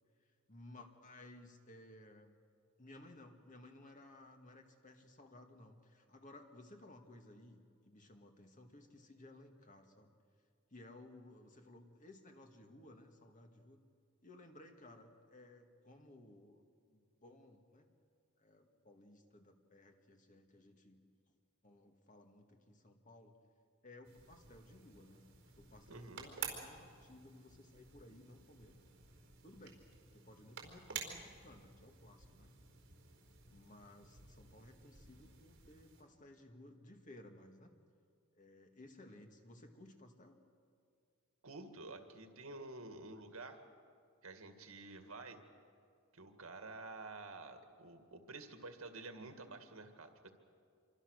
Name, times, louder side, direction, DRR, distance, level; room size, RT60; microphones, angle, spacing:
voice 1, 0.5-2.3 2.8-10.2 10.7-13.8 14.2-17.9 18.4-21.0 21.6-23.3 23.8-28.7 29.4-29.8 30.1-32.6 33.5-37.7 38.4-40.4, left 1 dB, 40° left, 4 dB, 2.1 m, -58 dB
untitled light clicker, 24.0-36.0, right 6 dB, 60° right, 4.5 m, -52 dB
voice 2, 25.9-26.3 41.4-43.6 44.2-45.4 46.1-50.3, right 2 dB, 80° right, 6 dB, 2.2 m, -50 dB
26.5 x 24.5 x 6.6 m, 2.2 s
head